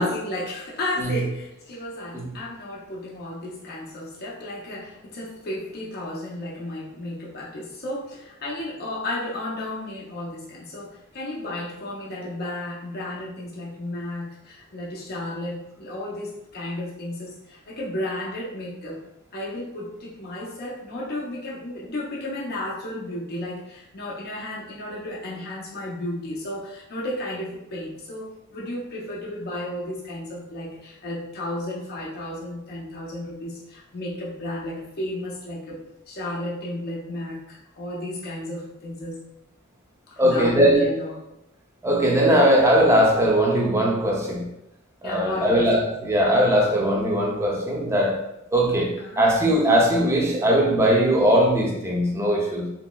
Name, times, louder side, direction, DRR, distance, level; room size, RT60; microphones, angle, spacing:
voice 1, 0.0-19.0 19.3-35.8 36.1-39.2 40.1-41.1 45.0-45.7 49.0-49.2, left 1 dB, 50° left, -5 dB, 0.6 m, -33 dB
voice 2, 40.2-40.9 41.8-44.5 45.0-48.2 48.5-52.7, equal, 15° right, -1 dB, 0.5 m, -20 dB
2.9 x 2.8 x 2.2 m, 0.88 s
head